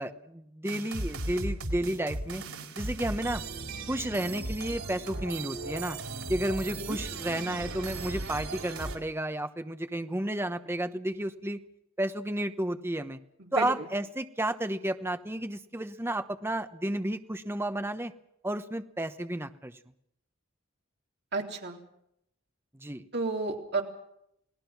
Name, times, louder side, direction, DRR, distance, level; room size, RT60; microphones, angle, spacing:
voice 1, 0.0-2.4 2.8-3.4 3.9-6.0 6.3-11.6 12.0-13.2 13.5-18.1 18.4-19.7 22.7-23.0, right 1 dB, 10° right, 8 dB, 1.0 m, -32 dB
sound 1, 0.6-9.0, right 2 dB, 85° right, 4.2 m, -37 dB
voice 2, 13.4-13.9 21.3-21.8 23.1-23.8, right 3 dB, 50° right, 1 dB, 3.6 m, -32 dB
29.0 x 19.0 x 6.0 m, 0.76 s
head